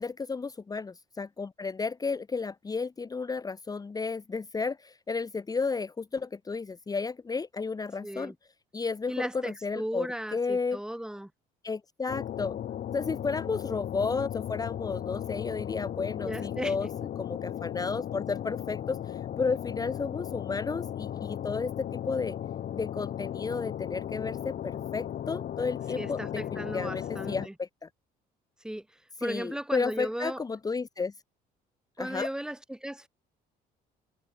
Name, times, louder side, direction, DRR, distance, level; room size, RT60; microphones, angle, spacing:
voice 1, 0.0-8.3 8.7-10.8 11.6-12.6 12.9-16.9 17.2-22.4 22.7-27.9 29.2-31.1 32.0-32.3, left 4 dB, 20° left, 1.4 m, -33 dB
voice 2, 8.0-8.3 9.1-11.3 16.2-16.7 26.0-27.5 28.6-28.8 29.2-30.4 32.0-33.1, right 1 dB, 5° right, 3.0 m, -36 dB
sound 1, 12.1-27.5, left 10 dB, 55° left, 7.6 m, -36 dB
cardioid pair, 110°, 17 cm